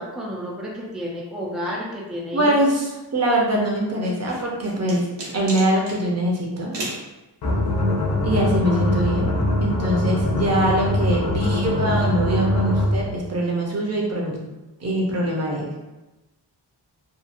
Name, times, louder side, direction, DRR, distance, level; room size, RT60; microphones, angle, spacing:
voice 1, 0.0-2.6, equal, ahead, -3 dB, 0.4 m, -31 dB
voice 2, 2.3-5.1 5.3-6.7 8.2-9.3 9.6-14.4 14.8-15.7, right 1 dB, 40° right, -2 dB, 0.7 m, -23 dB
sound 1, 4.0-6.0 6.7-7.0, right 2 dB, 80° right, 0.9 m, -33 dB
sound 2, 7.4-13.1, left 1 dB, 60° left, 0.6 m, -22 dB
2.8 x 2.4 x 2.5 m, 1.0 s
wide cardioid pair, 110°, 42 cm